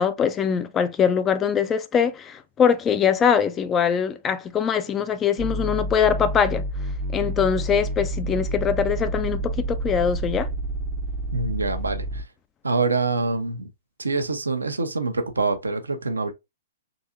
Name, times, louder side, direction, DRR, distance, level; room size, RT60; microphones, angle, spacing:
voice 1, 0.0-6.6 7.1-10.5, left 7 dB, 20° left, 0.3 m, -22 dB
sound 1, 5.4-12.2, right 1 dB, 50° right, 0.6 m, -29 dB
voice 2, 11.3-12.3 12.6-13.7 14.0-16.3, right 3 dB, 80° right, 0.7 m, -25 dB
3.8 x 2.8 x 2.4 m
figure-of-eight pair, 115°, 0 cm